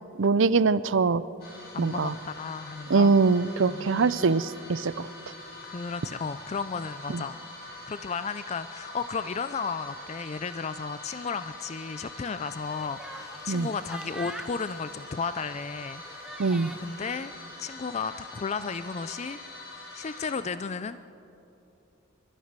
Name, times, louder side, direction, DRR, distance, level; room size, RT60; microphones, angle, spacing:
voice 1, 0.2-1.2 1.8-2.1 2.9-5.1 7.1-7.2 13.5-13.7 16.4-16.7, right 4 dB, 60° right, 17 dB, 0.5 m, -23 dB
sound 1, 1.4-20.3, left 2 dB, 50° left, 4.6 m, -44 dB
voice 2, 1.7-3.1 3.6-4.3 5.6-7.4 7.8-16.0 16.3-16.5 16.8-17.3 17.6-19.4 19.9-21.0, left 5 dB, 30° left, 12 dB, 0.4 m, -34 dB
sound 2, 12.5-17.0, right 1 dB, 5° right, 0.9 m, -45 dB
29.0 x 13.5 x 6.7 m, 2.9 s
head